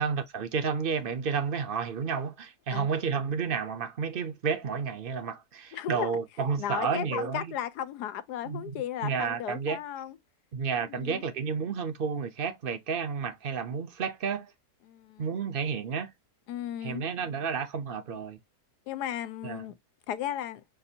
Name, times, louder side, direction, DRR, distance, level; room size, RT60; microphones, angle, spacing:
voice 1, 0.0-7.5 8.5-9.8 10.5-14.5 15.2-16.1 16.8-18.4 19.4-19.6, right 6 dB, 45° right, 0.8 m, -31 dB
voice 2, 5.7-6.1 6.6-10.2 10.8-11.2 14.8-15.3 16.5-17.0 18.9-19.7 20.1-20.6, left 10 dB, 80° left, 1.2 m, -35 dB
6.7 x 2.5 x 2.7 m
omnidirectional pair, 1.7 m